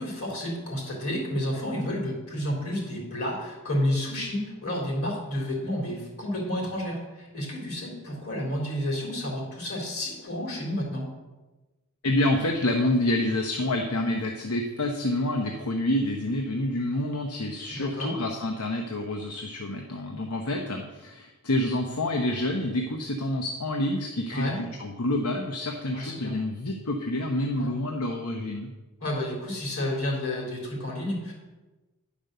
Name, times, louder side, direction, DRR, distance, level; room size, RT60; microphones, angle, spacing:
voice 1, 0.0-11.1 17.7-18.1 24.3-24.6 25.9-26.3 27.6-27.7 29.0-31.3, left 1 dB, 70° left, -2 dB, 3.7 m, -30 dB
voice 2, 12.0-28.7, left 1 dB, 90° left, 3 dB, 0.9 m, -28 dB
10.0 x 5.3 x 6.6 m, 1.1 s
head